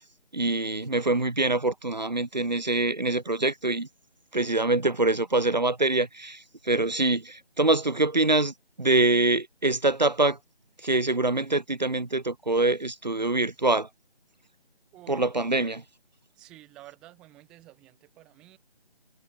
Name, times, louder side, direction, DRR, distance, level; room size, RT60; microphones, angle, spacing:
voice 1, 0.3-3.9 4.3-10.4 10.8-13.9 15.1-15.8, right 2 dB, 40° right, 3.5 m, -25 dB
voice 2, 14.9-15.3 15.6-15.7 16.4-18.6, right 17 dB, ahead, 4.2 m, -51 dB
figure-of-eight pair, 180°, 32 cm